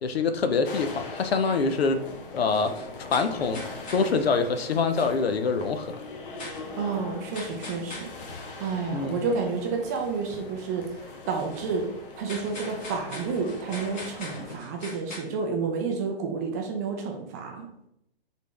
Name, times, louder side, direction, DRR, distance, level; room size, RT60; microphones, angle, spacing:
voice 1, 0.0-2.0 2.3-2.7 3.1-3.6 3.9-6.0 8.9-9.2, left 4 dB, 80° left, 9 dB, 0.6 m, -25 dB
sound 1, 0.6-14.6, left 3 dB, 60° left, 1.0 m, -41 dB
sound 2, 2.5-4.1 4.5-5.1 6.4-6.7 7.3-8.1 11.4-11.7 12.3-15.2, left 2 dB, 25° left, 1.5 m, -42 dB
voice 2, 6.8-8.1 8.6-11.9 12.2-17.7, right 5 dB, 20° right, 2 dB, 0.3 m, -30 dB
4.1 x 3.5 x 3.2 m, 0.79 s
hypercardioid pair, 130°, 30 cm